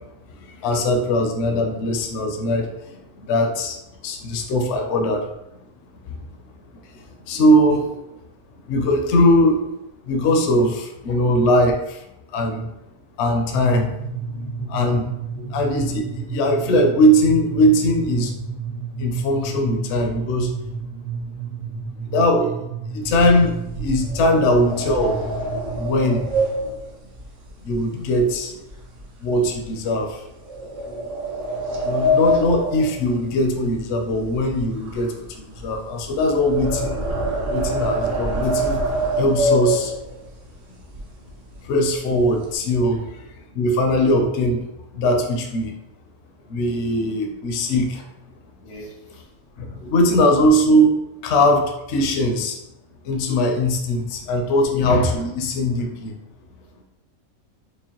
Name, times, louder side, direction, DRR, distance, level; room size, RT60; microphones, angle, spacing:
voice 1, 0.4-3.8 4.0-5.2 6.0-6.2 6.9-8.0 8.7-9.7 10.0-12.7 13.2-13.9 14.6-15.2 15.5-18.3 19.0-20.5 22.1-22.6 22.9-25.2 25.7-26.3 27.6-28.5 29.2-30.3 31.8-37.0 37.5-38.8 39.2-39.9 41.6-43.3 43.5-44.6 44.9-45.7 46.5-48.0 49.6-52.6 53.0-56.1, equal, 65° left, 4 dB, 0.7 m, -20 dB
sound 1, 13.5-26.5, right 5 dB, 85° right, 1.2 m, -32 dB
sound 2, 23.0-28.4 28.7-29.0 29.5-29.6 30.5-33.8 34.0-40.3 40.9-41.0 41.3-41.6 41.9-42.6, equal, 65° right, 1.0 m, -25 dB
voice 2, 30.8-31.2 46.7-46.8 47.9-48.0 48.6-49.3 54.7-54.8, left 1 dB, 85° left, -1 dB, 1.5 m, -42 dB
5.0 x 2.1 x 2.9 m, 0.87 s
omnidirectional pair, 1.6 m